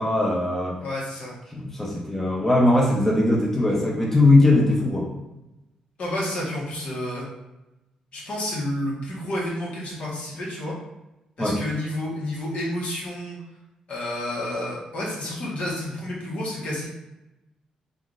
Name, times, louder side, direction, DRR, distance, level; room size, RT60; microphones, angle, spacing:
voice 1, 0.0-0.8 1.5-5.1 11.4-11.6, left 2 dB, 15° left, -3 dB, 0.6 m, -20 dB
voice 2, 0.8-1.4 6.0-7.3 8.1-10.7 11.4-13.4 13.9-16.9, left 1 dB, 60° left, -5 dB, 1.1 m, -30 dB
3.6 x 2.4 x 2.5 m, 0.97 s
cardioid pair, 85°, 2 cm